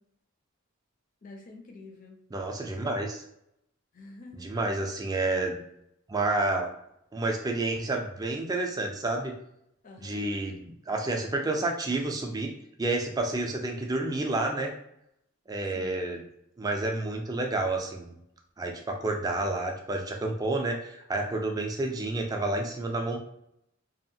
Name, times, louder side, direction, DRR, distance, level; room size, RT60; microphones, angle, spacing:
voice 1, 1.2-2.2 3.9-4.6 9.8-10.3 15.7-16.2, left 2 dB, 40° left, 2 dB, 0.5 m, -48 dB
voice 2, 2.3-3.2 4.3-5.6 6.1-6.8 7.1-9.3 10.0-12.5 12.8-14.7 15.5-16.2 16.6-18.2 18.6-23.2, right 2 dB, 20° right, 2 dB, 0.3 m, -30 dB
2.7 x 2.4 x 2.7 m, 0.78 s
head